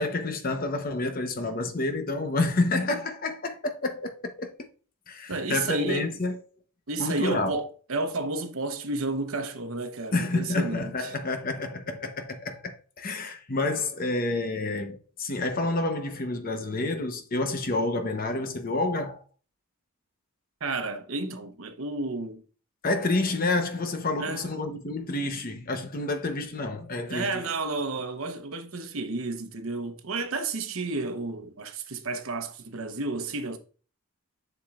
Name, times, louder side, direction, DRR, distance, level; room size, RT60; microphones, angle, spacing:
voice 1, 0.0-4.7 5.1-6.4 7.0-7.5 10.1-19.2 22.8-27.4, left 2 dB, 40° left, 0.9 m, -29 dB
voice 2, 5.3-6.1 6.9-11.1 20.6-22.4 24.2-24.5 27.1-33.6, right 3 dB, 70° right, 0.9 m, -31 dB
7.3 x 7.0 x 2.4 m
head